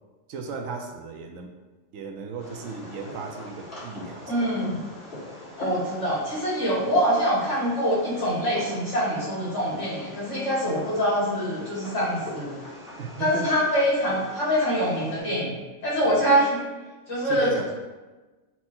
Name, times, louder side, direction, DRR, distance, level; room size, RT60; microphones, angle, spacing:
voice 1, 0.3-1.5 1.9-4.8 13.0-13.5 17.2-17.7, right 4 dB, 80° right, 4 dB, 1.0 m, -36 dB
Fireworks, 2.4-15.2, left 1 dB, 45° left, 1.7 m, -42 dB
voice 2, 4.3-4.8 5.6-12.6 13.2-15.6 15.8-16.6 17.1-17.7, equal, 65° left, -6 dB, 2.0 m, -24 dB
5.9 x 2.1 x 4.2 m, 1.2 s
omnidirectional pair, 1.3 m